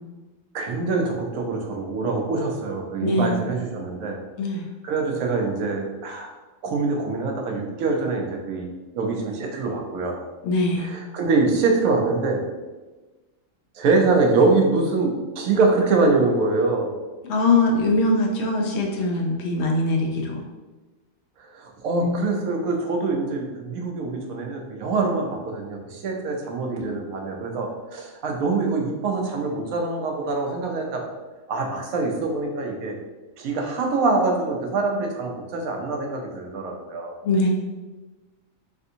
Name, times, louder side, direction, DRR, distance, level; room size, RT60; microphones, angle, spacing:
voice 1, 0.5-4.2 4.8-6.3 6.6-8.7 8.9-10.2 10.8-12.4 13.7-16.9 21.4-31.0 31.5-33.0 33.4-37.2, right 3 dB, 90° right, 1 dB, 1.0 m, -24 dB
voice 2, 3.0-3.5 4.4-4.7 10.4-10.9 17.3-20.4 22.0-22.2 37.2-37.5, left 2 dB, 65° left, 0 dB, 0.8 m, -22 dB
3.3 x 2.6 x 2.7 m, 1.2 s
omnidirectional pair, 1.4 m